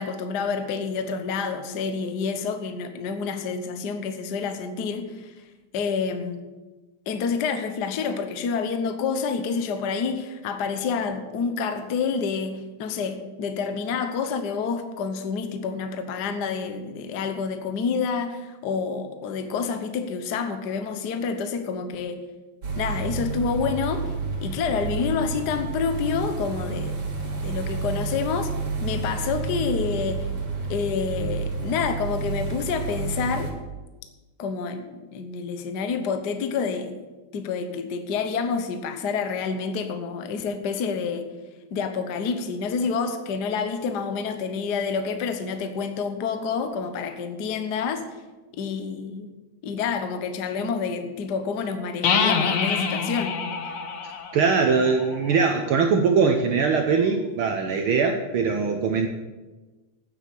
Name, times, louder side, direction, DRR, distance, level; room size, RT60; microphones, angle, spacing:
voice 1, 0.0-5.3 5.7-6.4 7.1-22.2 22.8-24.1 24.4-27.0 27.2-28.5 28.8-30.3 30.7-33.5 34.4-36.9 37.3-41.3 41.7-48.0 48.5-49.3 49.6-53.4, left 5 dB, 85° left, 7 dB, 0.9 m, -28 dB
sound 1, 22.6-33.5, right 4 dB, 50° right, 3.2 m, -30 dB
sound 2, 52.0-55.7, left 6 dB, 60° left, 1.5 m, -26 dB
voice 2, 54.3-59.1, right 5 dB, 75° right, 4 dB, 1.2 m, -21 dB
9.3 x 8.2 x 8.3 m, 1.2 s
omnidirectional pair, 3.4 m